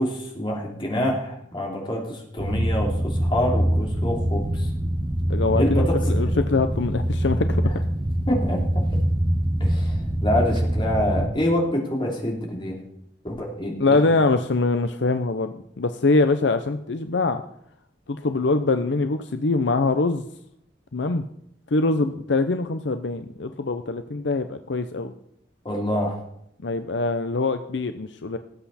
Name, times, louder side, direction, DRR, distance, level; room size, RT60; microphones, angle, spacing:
voice 1, 0.0-4.7 5.5-5.9 6.2-6.3 8.3-8.8 9.6-12.8 13.2-14.0 25.6-26.2, left 1 dB, 25° left, -1 dB, 3.3 m, -26 dB
sound 1, 2.4-11.3, equal, 25° right, 1.5 m, -24 dB
voice 2, 5.3-7.7 13.8-17.4 18.1-20.2 20.9-21.2 21.7-25.1 26.6-28.4, left 3 dB, 70° left, 9 dB, 0.7 m, -23 dB
19.0 x 8.1 x 4.3 m, 0.73 s
head